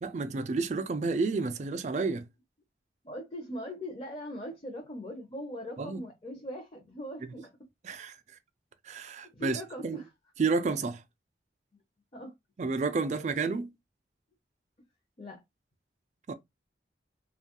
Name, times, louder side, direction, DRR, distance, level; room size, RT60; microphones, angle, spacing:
voice 1, 0.0-2.3 5.8-6.0 7.8-8.1 8.8-10.0 10.4-11.0 12.6-13.7 16.3-16.4, right 4 dB, 40° right, 0.3 m, -30 dB
voice 2, 3.0-7.5 9.4-10.1 12.1-12.3 15.2-15.4, equal, 30° left, 0.6 m, -40 dB
2.8 x 2.3 x 2.9 m
head